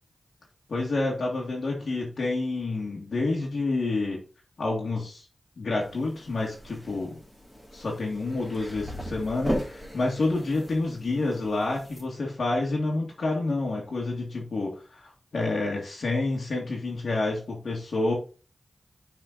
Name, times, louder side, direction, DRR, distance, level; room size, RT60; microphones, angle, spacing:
voice 1, 0.7-4.2 4.6-5.3 5.6-7.2 7.7-18.1, left 2 dB, 75° left, -3 dB, 1.9 m, -28 dB
sound 1, 5.8-12.0, equal, 5° left, 2.7 m, -37 dB
6.3 x 4.4 x 4.0 m, 0.35 s
cardioid pair, 45°, 0 cm